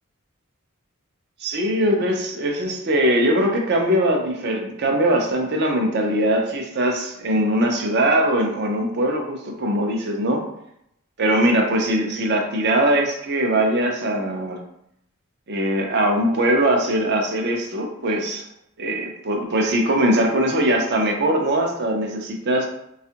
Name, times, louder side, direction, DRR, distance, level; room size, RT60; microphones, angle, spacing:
voice 1, 1.4-10.4 11.2-14.6 15.5-18.5 18.8-22.7, right 1 dB, 50° right, 2 dB, 0.5 m, -21 dB
4.1 x 2.4 x 2.8 m, 0.76 s
head